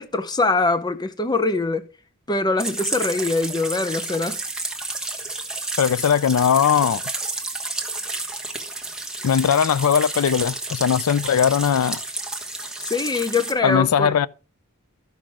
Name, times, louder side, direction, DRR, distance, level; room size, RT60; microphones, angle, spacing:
voice 1, 0.0-1.9 2.3-4.4 12.8-14.3, left 3 dB, 20° left, 0.7 m, -23 dB
sound 1, 2.6-13.5, right 2 dB, 5° right, 1.3 m, -31 dB
voice 2, 5.8-7.0 9.2-12.0 13.6-14.3, left 8 dB, 80° left, 0.4 m, -19 dB
13.0 x 6.0 x 4.8 m
head